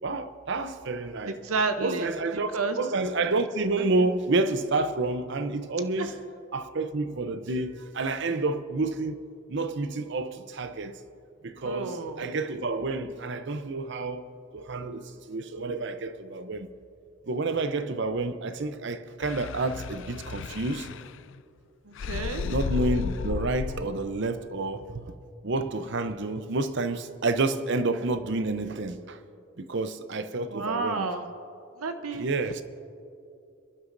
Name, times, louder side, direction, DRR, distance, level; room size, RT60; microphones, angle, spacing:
voice 1, 0.0-1.4 1.8-2.5 2.8-6.1 6.5-9.2 9.5-11.0 11.4-14.3 14.5-16.7 17.3-20.9 22.4-25.1 25.4-29.2 29.6-31.1 32.1-32.6, right 3 dB, 55° right, 0.6 m, -29 dB
voice 2, 1.3-2.1 2.5-2.8 3.8-3.9 6.0-6.1 11.6-12.3 21.9-22.5 30.5-31.3 31.8-32.3, right 3 dB, 85° right, 0.8 m, -30 dB
sound 1, 19.2-21.4 22.0-24.0, left 5 dB, 60° left, 0.4 m, -33 dB
28.0 x 11.5 x 2.6 m
head